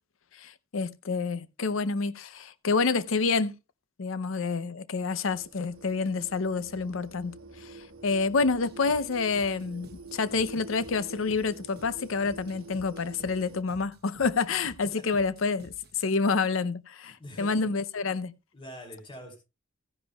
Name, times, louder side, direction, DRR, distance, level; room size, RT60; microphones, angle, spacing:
voice 1, 0.4-3.5 4.0-7.3 7.6-18.3, left 4 dB, 70° left, 0.6 m, -28 dB
sound 1, 5.2-13.6, right 2 dB, 90° right, 1.1 m, -47 dB
sound 2, 8.4-16.1, right 2 dB, 50° right, 0.9 m, -54 dB
voice 2, 14.8-15.1 17.2-17.7 18.5-19.4, equal, 25° left, 3.1 m, -44 dB
15.0 x 10.5 x 2.3 m
head